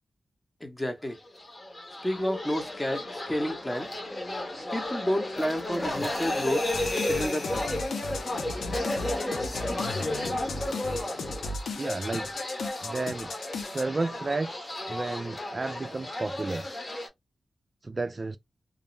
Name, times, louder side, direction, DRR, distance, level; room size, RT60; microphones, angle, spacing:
voice 1, 0.6-1.2 2.0-3.9 4.7-6.7 7.1-7.7, equal, 15° left, 0.8 m, -30 dB
sound 1, 1.3-17.1, left 1 dB, 35° left, 1.1 m, -33 dB
sound 2, 5.8-8.5, left 2 dB, 60° left, 1.0 m, -39 dB
sound 3, 6.7-13.8, left 3 dB, 85° left, 0.5 m, -36 dB
voice 2, 11.8-12.3 12.8-13.3 13.6-16.7 17.8-18.4, right 3 dB, 40° right, 0.3 m, -32 dB
2.5 x 2.1 x 3.0 m
cardioid pair, 50°, 0 cm